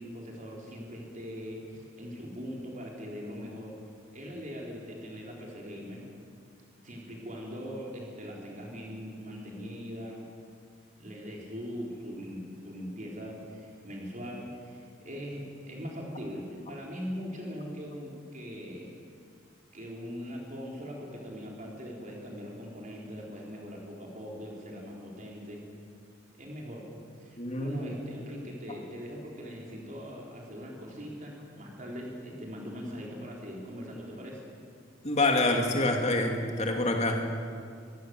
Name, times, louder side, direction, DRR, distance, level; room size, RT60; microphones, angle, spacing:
voice 1, 0.0-3.8 4.1-6.0 6.8-10.2 11.0-19.0 19.7-25.6 26.4-26.9 27.2-34.5, equal, 40° right, -2 dB, 4.0 m, -41 dB
voice 2, 27.4-27.9 35.0-37.3, left 2 dB, 35° left, 3 dB, 2.6 m, -27 dB
24.0 x 16.0 x 7.7 m, 2.2 s
head